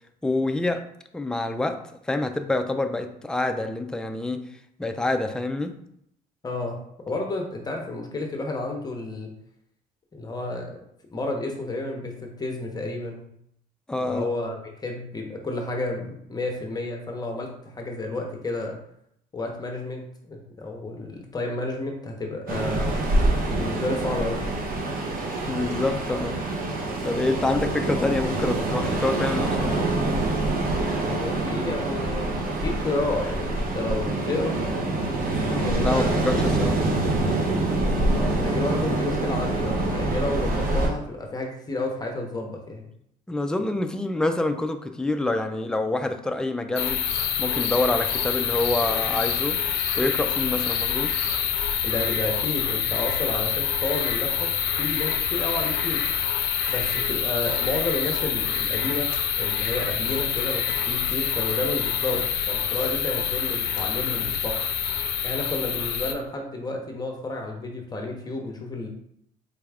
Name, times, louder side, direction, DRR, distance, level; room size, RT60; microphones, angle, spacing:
voice 1, 0.2-0.9 1.1-4.5 4.8-5.8 13.9-14.3 25.5-26.4 27.0-29.8 35.5-36.8 43.3-47.0 47.4-49.6 50.0-51.1, left 2 dB, 5° left, 6 dB, 0.3 m, -26 dB
voice 2, 6.4-6.8 7.0-9.3 10.1-10.8 11.1-13.3 14.1-18.8 19.3-22.9 23.6-24.5 31.0-34.6 35.6-36.2 36.8-36.9 38.1-42.9 51.8-54.5 54.8-56.0 56.7-64.6 65.2-68.9, left 2 dB, 25° left, 1 dB, 0.7 m, -31 dB
Ocean, 22.5-40.9, right 2 dB, 60° right, 0.8 m, -25 dB
sound 1, 46.8-66.1, left 8 dB, 90° left, 0.5 m, -26 dB
4.0 x 2.3 x 3.4 m, 0.73 s
cardioid pair, 110°, 17 cm